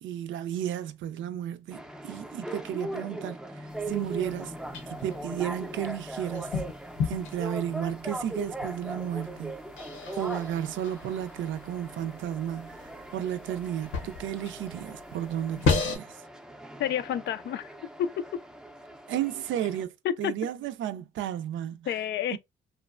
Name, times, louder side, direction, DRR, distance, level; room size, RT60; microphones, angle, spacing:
voice 1, 0.0-4.5 4.9-6.6 7.0-9.6 10.1-16.2 19.1-22.0 22.3-22.4, right 10 dB, 75° right, 0.4 m, -33 dB
sound 1, 1.7-19.8, right 1 dB, 5° right, 0.5 m, -40 dB
sound 2, 3.7-16.0, left 5 dB, 80° left, 0.8 m, -36 dB
voice 2, 16.8-17.7 18.0-18.4 20.0-20.3 21.9-22.4, left 9 dB, 65° left, 0.4 m, -29 dB
3.0 x 2.1 x 2.3 m
cardioid pair, 90°, 20 cm